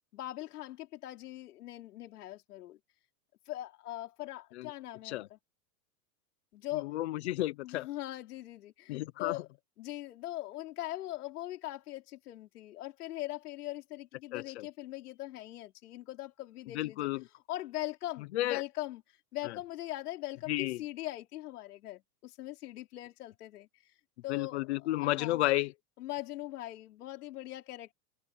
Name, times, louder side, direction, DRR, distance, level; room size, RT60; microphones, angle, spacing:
voice 1, 0.1-2.8 3.5-5.4 6.5-6.9 7.6-9.5 9.8-17.1 17.5-19.0 19.3-23.7 24.2-25.4 26.0-27.9, left 15 dB, 70° left, 4.3 m, -41 dB
voice 2, 6.7-7.9 8.9-9.4 14.3-14.7 16.7-17.3 18.3-18.6 19.4-19.6 20.5-20.8 24.3-25.7, left 17 dB, 45° left, 0.9 m, -32 dB
supercardioid pair, 180°, 48 cm